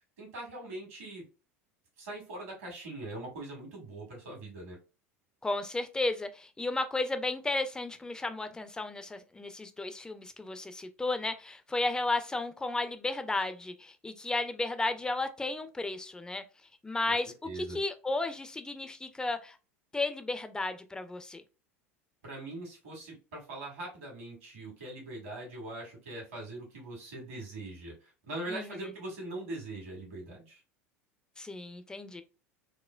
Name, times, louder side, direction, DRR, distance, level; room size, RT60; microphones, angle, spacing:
voice 1, 0.2-1.3 2.0-4.8 17.0-17.2 17.4-17.8 22.2-30.6, right 2 dB, 70° right, 1.6 m, -42 dB
voice 2, 5.4-16.4 16.8-19.6 19.9-21.4 28.5-28.9 31.4-32.2, left 2 dB, 10° left, 0.4 m, -33 dB
4.2 x 2.1 x 2.2 m
figure-of-eight pair, 75°, 7 cm